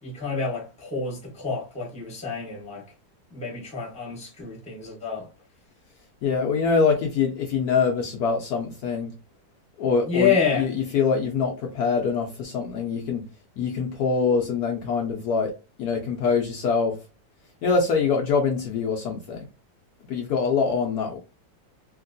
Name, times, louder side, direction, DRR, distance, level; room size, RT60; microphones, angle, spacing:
voice 1, 0.0-2.8 3.3-5.3 10.0-10.7, left 6 dB, 5° left, 0.8 m, -28 dB
voice 2, 6.2-9.1 9.8-13.3 13.6-15.5 15.8-17.0 17.6-19.5 20.1-21.2, left 5 dB, 70° left, 1.0 m, -24 dB
2.9 x 2.9 x 2.6 m
omnidirectional pair, 2.0 m